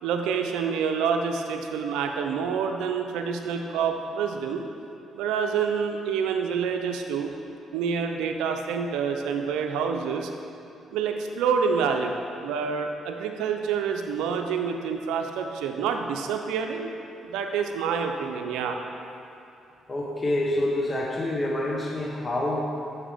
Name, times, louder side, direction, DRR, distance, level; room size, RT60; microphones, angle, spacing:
voice 1, 0.0-4.6 5.2-7.3 7.7-10.3 10.9-12.1 12.4-16.9 17.2-18.8, right 6 dB, 85° right, 4 dB, 0.5 m, -27 dB
voice 2, 19.9-22.7, left 1 dB, 30° left, -2 dB, 0.8 m, -27 dB
7.2 x 5.8 x 3.5 m, 2.8 s
supercardioid pair, 70°, 0 cm